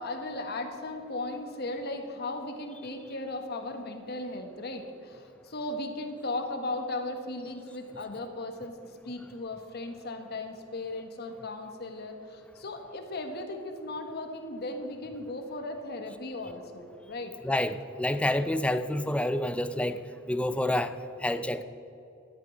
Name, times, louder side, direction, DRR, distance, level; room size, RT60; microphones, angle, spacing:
voice 1, 0.0-17.3, left 2 dB, 55° left, 5 dB, 1.3 m, -37 dB
voice 2, 17.4-20.0 20.3-21.6, left 1 dB, 5° left, 11 dB, 0.4 m, -28 dB
13.0 x 8.8 x 6.2 m, 2.7 s
head